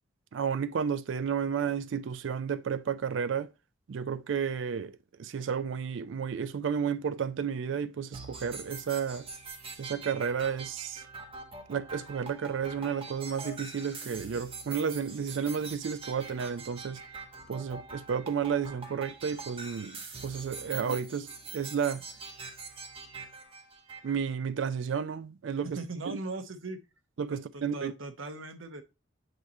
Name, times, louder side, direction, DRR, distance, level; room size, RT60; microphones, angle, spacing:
voice 1, 0.3-3.5 3.9-9.3 9.8-11.0 11.7-17.0 17.5-22.0 24.0-25.8 26.1-26.2 27.2-27.9, right 7 dB, 70° right, 0.4 m, -32 dB
sound 1, 8.1-24.1, right 4 dB, 25° right, 1.0 m, -44 dB
sound 2, 13.3-14.5 15.1-18.6 18.9-19.6 20.2-22.2, left 2 dB, 35° left, 1.3 m, -55 dB
voice 2, 25.6-26.8 27.3-28.8, right 3 dB, 90° right, 1.0 m, -39 dB
8.0 x 3.0 x 4.2 m
head